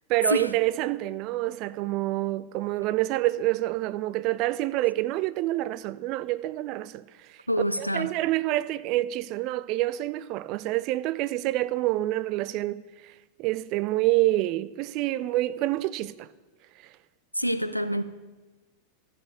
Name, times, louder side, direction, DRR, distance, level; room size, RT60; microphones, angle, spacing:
voice 1, 0.1-7.0 7.8-12.8 13.4-16.3, right 16 dB, 40° right, 0.3 m, -27 dB
voice 2, 7.5-8.1 17.3-18.0, equal, 90° left, 0.4 m, -26 dB
13.5 x 4.9 x 6.7 m
figure-of-eight pair, 90°, 0 cm